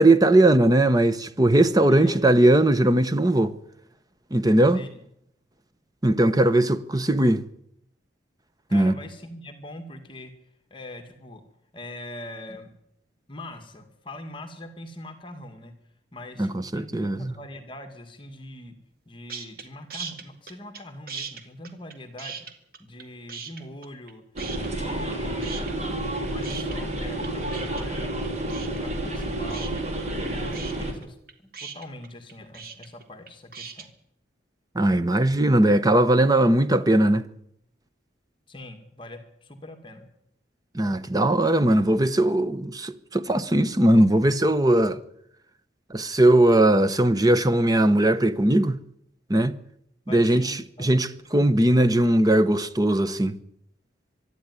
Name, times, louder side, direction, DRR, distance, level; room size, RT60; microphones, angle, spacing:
voice 1, 0.0-3.5 4.3-4.8 6.0-7.4 8.7-8.9 16.4-17.3 34.7-37.3 40.7-45.0 45.9-48.8 49.3-49.6 50.1-53.4, right 1 dB, 20° right, 1.0 m, -19 dB
voice 2, 1.9-2.2 4.7-4.9 8.7-10.3 10.7-11.4 11.7-12.7 13.3-15.7 16.1-18.7 19.1-22.5 22.8-24.2 24.6-25.8 26.1-29.7 30.1-33.9 38.5-40.1 50.1-51.7, left 1 dB, 25° left, 2.0 m, -42 dB
sound 1, 19.3-19.6 19.9-20.8 21.1-23.0 23.3-24.1 24.4-25.1 25.4-33.9, right 6 dB, 50° right, 2.1 m, -38 dB
sound 2, 24.4-30.9, right 1 dB, 35° right, 3.7 m, -30 dB
24.0 x 12.0 x 9.8 m
head